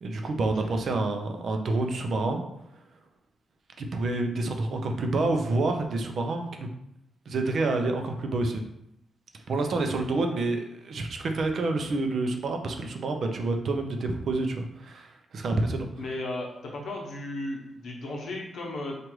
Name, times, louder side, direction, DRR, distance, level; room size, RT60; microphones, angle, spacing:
voice 1, 0.0-2.4 3.8-6.7 7.3-8.6 9.5-15.9, right 2 dB, 55° right, 4 dB, 0.5 m, -28 dB
voice 2, 16.0-19.0, left 2 dB, 70° left, -1 dB, 0.9 m, -35 dB
4.6 x 2.5 x 3.1 m, 0.80 s
wide cardioid pair, 140°, 0 cm